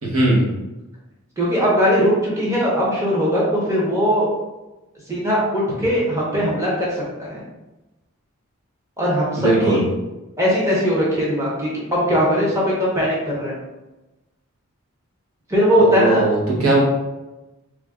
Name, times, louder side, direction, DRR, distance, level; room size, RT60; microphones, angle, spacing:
voice 1, 0.0-0.5 9.4-9.8 15.8-16.8, right 2 dB, 75° right, -4 dB, 1.1 m, -18 dB
voice 2, 1.4-4.3 5.1-7.4 9.0-9.8 10.4-13.6 15.5-16.2, equal, 15° right, -6 dB, 0.7 m, -19 dB
3.2 x 2.5 x 3.5 m, 1.0 s
head